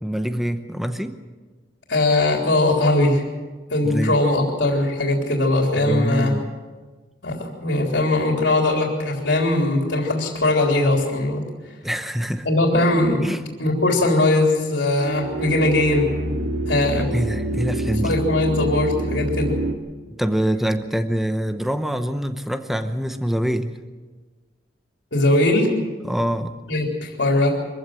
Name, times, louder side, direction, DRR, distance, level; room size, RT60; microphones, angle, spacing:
voice 1, 0.0-1.2 3.8-4.2 5.7-6.5 11.8-12.5 13.2-13.4 17.0-18.1 20.2-23.7 26.0-26.5, equal, ahead, 8 dB, 0.8 m, -25 dB
voice 2, 1.9-3.2 3.7-6.4 7.2-11.4 12.4-13.2 13.6-16.1 16.7-17.1 18.0-19.6 25.1-25.7 26.7-27.6, left 2 dB, 80° left, 0 dB, 3.6 m, -20 dB
sound 1, 14.9-19.7, right 1 dB, 85° right, 2.8 m, -27 dB
24.0 x 15.5 x 7.8 m, 1.4 s
head